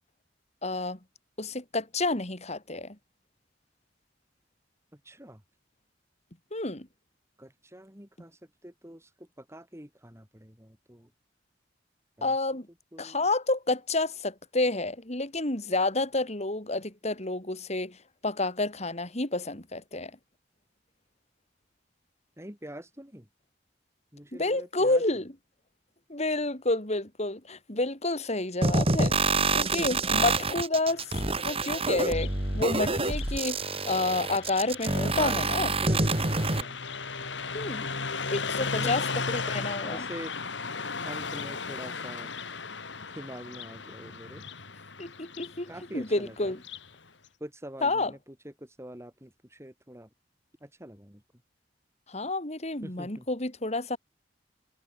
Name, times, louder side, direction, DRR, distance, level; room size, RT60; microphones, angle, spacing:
voice 1, 0.6-1.0 1.4-3.0 6.5-6.9 12.2-12.7 13.0-18.0 18.2-20.1 24.3-25.3 26.1-29.2 29.5-31.1 31.4-35.7 37.5-37.9 38.3-40.1 45.0-46.6 47.8-48.1 52.1-54.0, left 2 dB, 35° left, 3.7 m, -29 dB
voice 2, 4.9-5.4 7.4-11.1 12.2-12.3 12.9-13.3 22.4-23.3 24.1-25.0 29.5-30.2 35.0-36.8 38.7-38.9 39.8-40.3 41.0-42.3 43.1-44.4 45.7-46.5 47.4-50.1 50.6-51.2 52.8-53.3, right 1 dB, 15° right, 6.2 m, -44 dB
sound 1, 28.6-36.6, right 3 dB, 30° right, 4.2 m, -27 dB
Car passing by, 30.9-46.9, left 4 dB, 75° left, 3.0 m, -37 dB
head